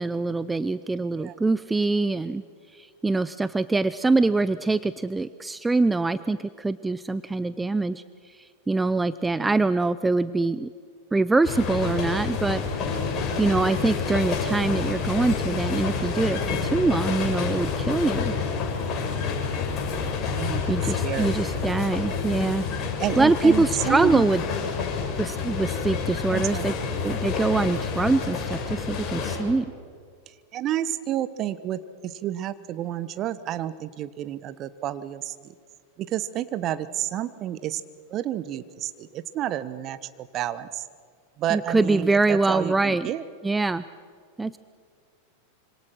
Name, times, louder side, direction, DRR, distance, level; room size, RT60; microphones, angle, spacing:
voice 1, 0.0-2.4 2.7-8.0 8.4-10.7 11.1-13.0 13.4-18.3 20.7-22.6 23.2-24.4 25.2-26.7 27.0-29.7 41.5-43.1 43.4-43.8 44.4-44.6, right 3 dB, 10° right, 15 dB, 0.6 m, -24 dB
sound 1, 11.4-29.4, left 5 dB, 35° left, 6.6 m, -28 dB
voice 2, 20.2-21.4 23.0-24.3 26.3-26.7 30.3-35.3 36.0-37.8 38.1-40.8 41.4-43.2, right 12 dB, 35° right, 14 dB, 1.2 m, -30 dB
26.0 x 26.0 x 6.3 m, 2.1 s
figure-of-eight pair, 90°, 0 cm